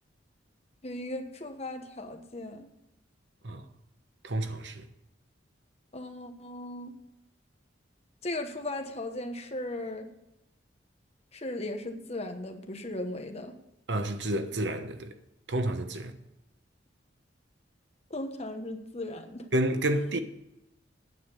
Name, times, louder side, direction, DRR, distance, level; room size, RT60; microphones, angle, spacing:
voice 1, 0.8-2.7 5.9-6.9 8.2-10.1 11.3-13.5 18.1-19.5, left 1 dB, 35° left, 1.1 m, -37 dB
voice 2, 4.2-4.9 13.9-15.1 15.5-16.1 19.5-20.2, right 1 dB, 65° right, 1.0 m, -29 dB
9.4 x 7.6 x 6.8 m
head